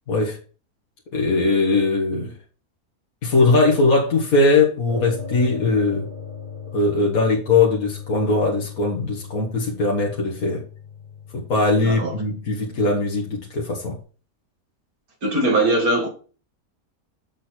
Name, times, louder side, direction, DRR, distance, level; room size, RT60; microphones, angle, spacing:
voice 1, 0.1-0.4 1.1-2.3 3.2-6.1 6.7-10.6 11.3-14.0, left 3 dB, 65° left, -2 dB, 2.2 m, -20 dB
sound 1, 4.9-14.0, left 6 dB, 25° left, 1.9 m, -39 dB
voice 2, 11.8-12.1 15.2-16.1, right 2 dB, 75° right, 0 dB, 3.0 m, -20 dB
7.5 x 6.3 x 4.5 m, 0.37 s
omnidirectional pair, 1.6 m